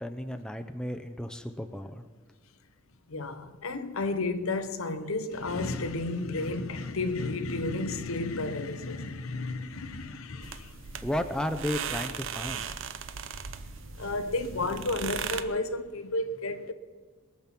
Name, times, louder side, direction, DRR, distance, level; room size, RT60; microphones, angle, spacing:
voice 1, 0.0-2.0 11.0-12.7, left 1 dB, 5° left, 0.6 m, -33 dB
voice 2, 3.1-11.1 13.3-13.4 13.9-16.7, left 2 dB, 90° left, 0.9 m, -32 dB
sound 1, 10.4-15.4, right 7 dB, 65° right, 0.7 m, -37 dB
22.0 x 7.4 x 6.0 m
head